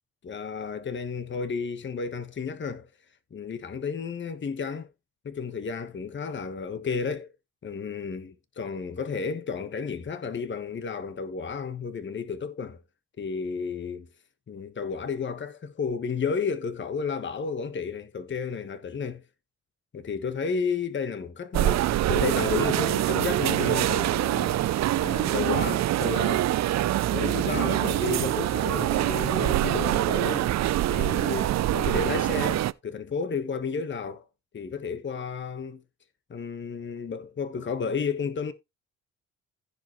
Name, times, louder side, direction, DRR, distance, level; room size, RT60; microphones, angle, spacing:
voice 1, 0.2-2.9 3.3-4.9 5.2-7.3 7.6-12.8 13.2-14.1 14.5-19.2 19.9-26.5 27.1-30.5 30.9-34.2 34.5-35.8 36.3-38.5, left 5 dB, 40° left, 1.4 m, -32 dB
sound 1, 21.5-32.7, right 14 dB, 65° right, 0.6 m, -25 dB
15.5 x 5.2 x 3.1 m
cardioid pair, 90°, 30 cm